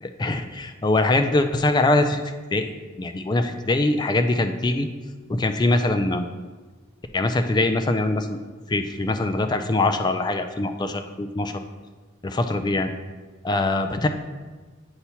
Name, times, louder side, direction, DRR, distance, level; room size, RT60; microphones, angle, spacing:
voice 1, 0.0-2.2 2.5-2.7 3.0-4.9 5.3-6.3 7.1-8.4 8.7-11.5 12.2-12.9 13.4-14.1, left 2 dB, 20° left, 8 dB, 0.3 m, -23 dB
8.1 x 2.9 x 5.6 m, 1.3 s
head